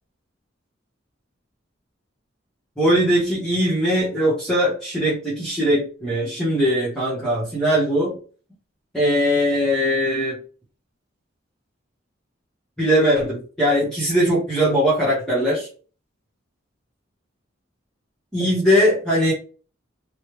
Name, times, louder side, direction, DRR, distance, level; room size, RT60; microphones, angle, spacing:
voice 1, 2.8-8.2 8.9-10.4 12.8-15.7 18.3-19.3, equal, 5° left, -9 dB, 1.0 m, -20 dB
3.1 x 2.3 x 3.1 m, 0.38 s
head